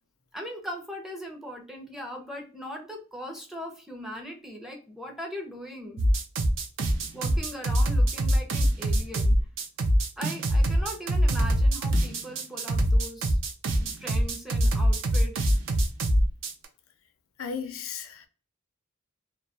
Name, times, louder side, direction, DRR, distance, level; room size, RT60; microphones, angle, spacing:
voice 1, 0.3-6.0 7.1-9.4 10.2-13.4 13.8-15.5, equal, ahead, 0.5 m, -39 dB
sound 1, 6.0-16.7, equal, 65° right, 0.5 m, -23 dB
voice 2, 17.4-18.3, left 6 dB, 70° left, 0.4 m, -35 dB
2.2 x 2.2 x 2.7 m
head